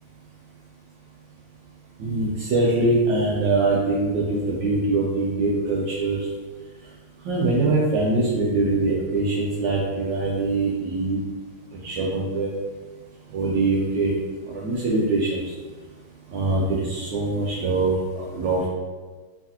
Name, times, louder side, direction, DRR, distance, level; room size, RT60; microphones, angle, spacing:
voice 1, 2.0-6.3 7.2-11.2 11.8-12.5 13.3-14.1 14.5-15.4 16.3-18.7, right 2 dB, 70° right, -4 dB, 1.2 m, -23 dB
4.8 x 3.2 x 2.8 m, 1.4 s
omnidirectional pair, 2.3 m